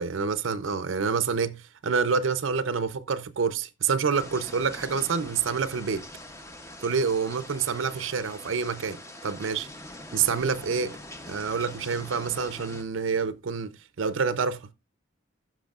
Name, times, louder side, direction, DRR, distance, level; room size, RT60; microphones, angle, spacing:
voice 1, 0.0-6.1 6.8-9.7 10.1-11.0 11.3-14.7, right 5 dB, 85° right, 0.6 m, -27 dB
sound 1, 4.1-12.8, left 1 dB, 15° left, 0.7 m, -43 dB
15.5 x 6.1 x 2.4 m
head